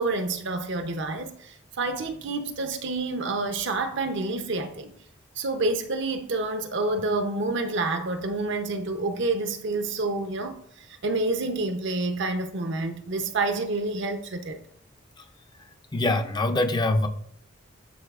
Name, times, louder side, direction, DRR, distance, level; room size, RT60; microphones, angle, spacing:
voice 1, 0.0-4.9 5.4-14.6, right 2 dB, 60° right, 0.7 m, -28 dB
voice 2, 15.9-17.1, left 2 dB, 20° left, 0.4 m, -23 dB
11.5 x 4.0 x 2.4 m
head